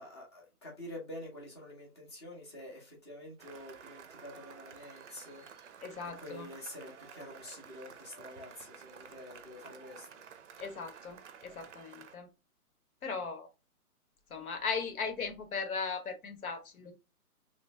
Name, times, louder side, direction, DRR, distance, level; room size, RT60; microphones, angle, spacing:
voice 1, 0.0-5.8 6.2-10.2, left 1 dB, 20° left, 0.7 m, -47 dB
Cheering / Applause, 3.4-12.2, right 7 dB, 55° right, 0.5 m, -52 dB
voice 2, 5.8-6.5 10.6-12.3 13.0-13.5 14.3-16.9, left 5 dB, 70° left, 1.3 m, -38 dB
3.0 x 3.0 x 2.7 m
hypercardioid pair, 165°, 45 cm